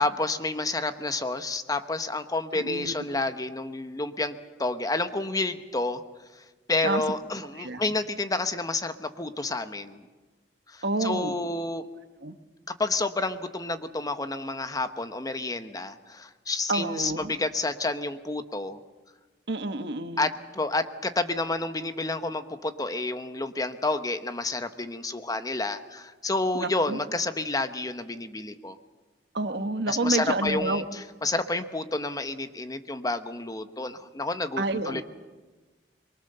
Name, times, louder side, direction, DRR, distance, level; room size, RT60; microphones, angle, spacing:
voice 1, 0.0-6.0 6.4-10.0 10.7-11.8 12.7-18.8 20.2-28.8 29.9-35.0, left 2 dB, 20° left, 9 dB, 1.0 m, -30 dB
voice 2, 2.5-2.9 6.8-7.0 7.6-7.8 10.8-11.4 12.2-12.4 16.7-17.3 19.5-20.3 26.5-27.0 29.3-30.8 34.6-35.0, right 2 dB, 70° right, 9 dB, 1.3 m, -29 dB
23.5 x 23.5 x 6.8 m, 1.3 s
head